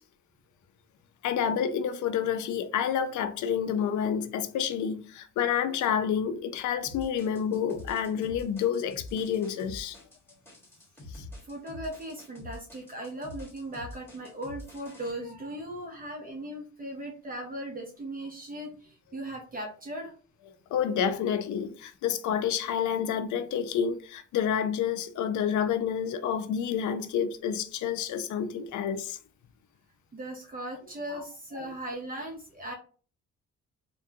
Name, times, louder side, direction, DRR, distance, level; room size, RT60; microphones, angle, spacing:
voice 1, 1.2-10.0 11.1-11.2 20.7-29.2 31.1-31.2 31.6-31.7, left 8 dB, 75° left, 0.5 m, -29 dB
sound 1, 6.8-15.1, left 2 dB, 10° left, 1.5 m, -46 dB
voice 2, 11.4-20.1 30.1-32.7, right 1 dB, 30° right, 0.7 m, -38 dB
3.4 x 2.2 x 2.7 m
cardioid pair, 90°, 30 cm